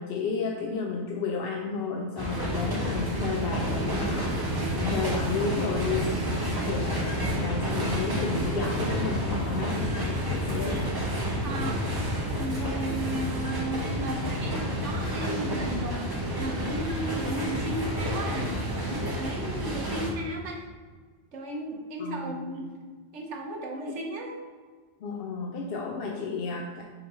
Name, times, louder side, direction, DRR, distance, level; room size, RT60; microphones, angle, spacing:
voice 1, 0.0-4.4 4.8-6.2 6.6-10.9 22.0-22.5 23.9-24.0 25.0-26.8, left 4 dB, 65° left, 1 dB, 0.7 m, -32 dB
sound 1, 2.2-20.1, equal, 20° right, 0.9 m, -30 dB
voice 2, 11.4-11.9 12.3-16.1 16.4-18.6 18.8-20.7 21.3-22.7 23.1-24.3, right 1 dB, 85° right, 1 dB, 1.2 m, -34 dB
4.8 x 3.7 x 5.2 m, 1.5 s
omnidirectional pair, 1.2 m